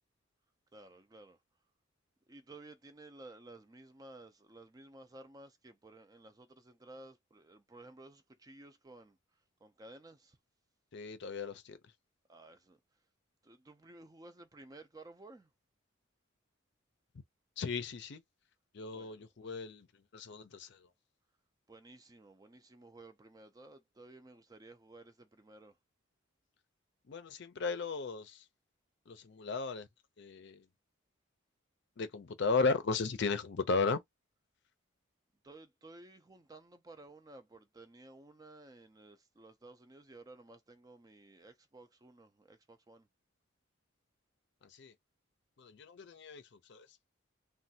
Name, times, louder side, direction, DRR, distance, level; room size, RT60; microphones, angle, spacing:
voice 1, 0.7-1.4 2.3-9.2 9.6-10.4 12.3-12.8 13.4-15.5 18.9-19.5 21.7-25.8 35.4-43.1, right 2 dB, 20° right, 0.4 m, -55 dB
voice 2, 10.9-11.8 17.6-18.2 18.7-19.9 20.1-20.9 27.1-28.4 29.1-29.9 30.2-30.7 32.0-34.0 44.6-44.9 45.6-46.9, left 4 dB, 60° left, 0.5 m, -35 dB
3.2 x 2.2 x 2.7 m
head